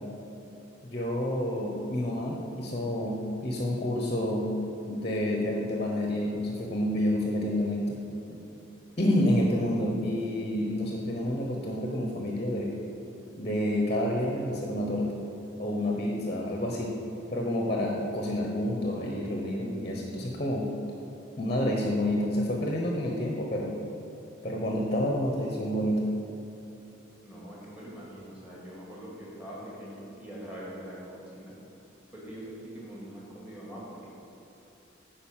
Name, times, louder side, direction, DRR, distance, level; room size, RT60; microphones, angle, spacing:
voice 1, 0.8-4.5 4.9-8.0 9.0-12.8 13.4-15.1 15.6-16.9 17.3-20.7 21.4-23.7 24.4-26.0, left 1 dB, 30° left, 0 dB, 0.9 m, -29 dB
voice 2, 27.2-31.5 32.1-34.1, equal, 5° right, -6 dB, 2.3 m, -43 dB
9.1 x 5.3 x 7.3 m, 3.0 s
head